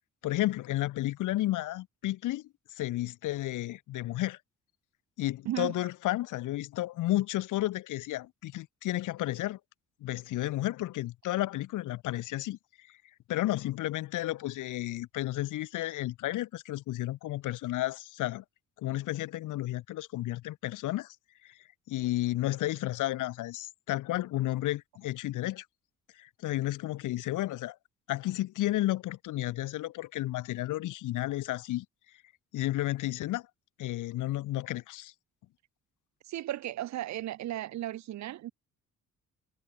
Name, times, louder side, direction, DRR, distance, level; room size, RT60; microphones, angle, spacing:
voice 1, 0.2-2.4 2.7-4.4 5.2-9.6 10.0-13.0 13.3-18.4 18.8-21.1 21.4-21.6 21.9-25.6 26.2-27.8 28.1-31.8 32.5-33.5 33.8-35.1, left 16 dB, 85° left, 1.4 m, -32 dB
voice 2, 36.3-38.5, right 13 dB, 65° right, 0.8 m, -35 dB
cardioid pair, 90°, 30 cm